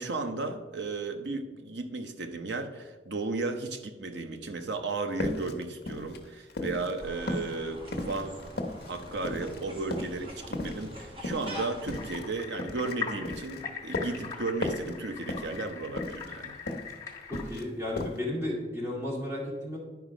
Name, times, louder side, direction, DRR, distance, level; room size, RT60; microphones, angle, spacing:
voice 1, 0.0-8.4 8.9-16.6, right 3 dB, 80° right, 7 dB, 0.8 m, -34 dB
sound 1, 5.2-7.0 7.3-9.6 9.9-10.2 10.5-12.9 13.3-14.3 14.6-15.0 15.2-15.7 16.0-16.9 17.2-17.7 18.0-18.2, left 2 dB, 65° left, 0.9 m, -35 dB
sound 2, 7.0-12.2, equal, 30° right, 1.4 m, -44 dB
sound 3, 11.9-17.4, left 7 dB, 15° left, 1.4 m, -41 dB
voice 2, 17.3-19.8, left 1 dB, 15° right, -4 dB, 2.0 m, -33 dB
11.0 x 4.7 x 5.0 m, 1.3 s
head